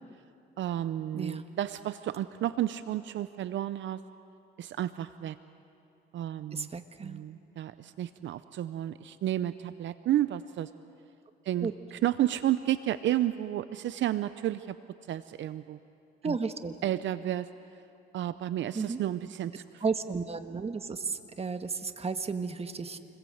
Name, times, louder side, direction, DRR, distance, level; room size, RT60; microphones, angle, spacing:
voice 1, 0.6-4.0 4.6-5.4 6.1-6.7 7.0-10.7 11.4-14.7 15.1-15.8 16.2-16.4 16.8-17.5 18.1-19.8, right 12 dB, 70° right, 13 dB, 0.7 m, -31 dB
voice 2, 1.1-1.4 6.5-7.2 11.6-11.7 16.2-16.8 18.7-19.0 19.8-23.0, right 4 dB, 30° right, 8 dB, 1.5 m, -33 dB
28.5 x 21.5 x 7.9 m, 2.6 s
cardioid pair, 90°, 20 cm